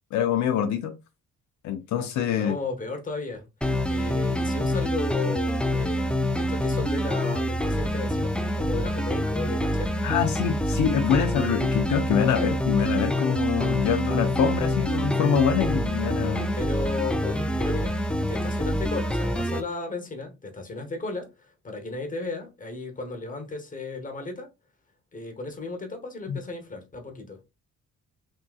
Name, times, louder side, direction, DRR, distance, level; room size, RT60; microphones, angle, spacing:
voice 1, 0.1-1.0 1.6-2.6 10.0-16.5 26.3-26.4, left 8 dB, 70° left, 0.5 m, -25 dB
voice 2, 2.4-10.0 16.3-18.0 18.3-24.5 25.1-27.4, left 3 dB, 25° left, 1.0 m, -35 dB
sound 1, 3.6-19.6, equal, 5° left, 0.3 m, -26 dB
3.6 x 2.6 x 2.3 m
cardioid pair, 90°, 30 cm